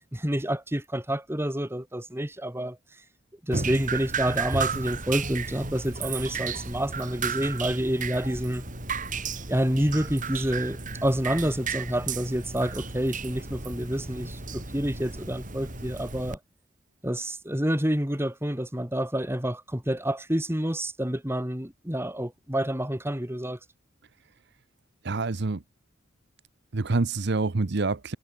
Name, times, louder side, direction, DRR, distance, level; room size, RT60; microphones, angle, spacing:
voice 1, 0.1-2.8 3.4-8.6 9.5-16.4 17.0-23.6, right 1 dB, 10° right, 2.6 m, -28 dB
Drip, 3.5-16.4, right 4 dB, 40° right, 5.1 m, -33 dB
voice 2, 25.0-25.6 26.7-28.2, right 3 dB, 60° right, 0.8 m, -26 dB
head